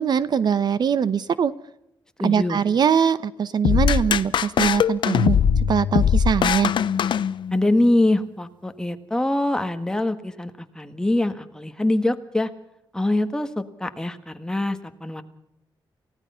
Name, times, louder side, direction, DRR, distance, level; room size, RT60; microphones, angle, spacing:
voice 1, 0.0-1.5 2.2-6.7, right 7 dB, 60° right, 16 dB, 0.8 m, -22 dB
voice 2, 2.2-2.6 7.5-12.5 12.9-15.2, left 1 dB, 10° left, 8 dB, 1.6 m, -24 dB
sound 1, 3.6-7.8, left 8 dB, 70° left, 0.8 m, -21 dB
29.0 x 17.0 x 5.7 m, 0.79 s
wide cardioid pair, 140°, 8 cm